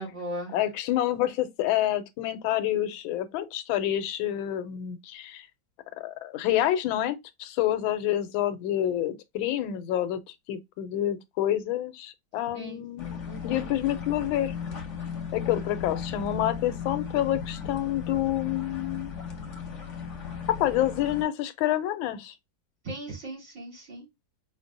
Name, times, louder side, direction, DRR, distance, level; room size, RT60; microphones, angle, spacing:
voice 1, 0.0-0.6 12.5-12.8 13.2-13.7 22.8-24.1, right 1 dB, 65° right, 2.9 m, -38 dB
voice 2, 0.5-5.5 6.0-10.2 10.5-13.2 13.4-14.5 15.3-19.1 20.6-22.3, left 12 dB, 85° left, 1.3 m, -28 dB
sound 1, 13.0-21.2, left 6 dB, 55° left, 0.8 m, -36 dB
5.1 x 2.0 x 2.5 m
omnidirectional pair, 2.1 m